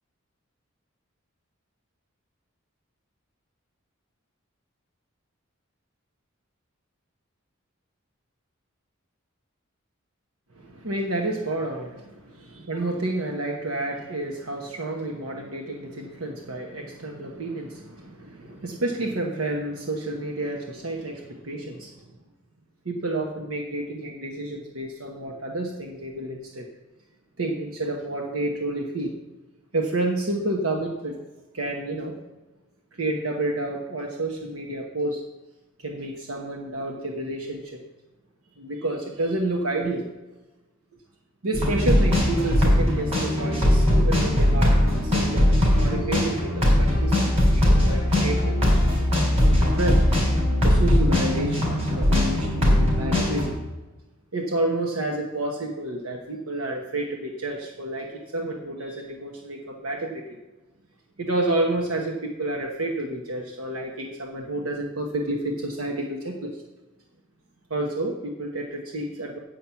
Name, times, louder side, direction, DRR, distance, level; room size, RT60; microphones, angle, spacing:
voice 1, 10.5-22.1 22.8-26.7 27.4-29.1 29.7-31.2 31.5-32.1 32.9-35.2 35.8-37.8 38.6-40.1 41.4-48.7 49.2-50.0 50.6-53.5 54.3-60.4 61.2-66.6 67.7-69.4, right 2 dB, 85° right, 1 dB, 1.1 m, -30 dB
sound 1, 41.5-53.5, left 1 dB, 30° right, 3.9 m, -20 dB
8.4 x 6.0 x 7.0 m, 1.1 s
head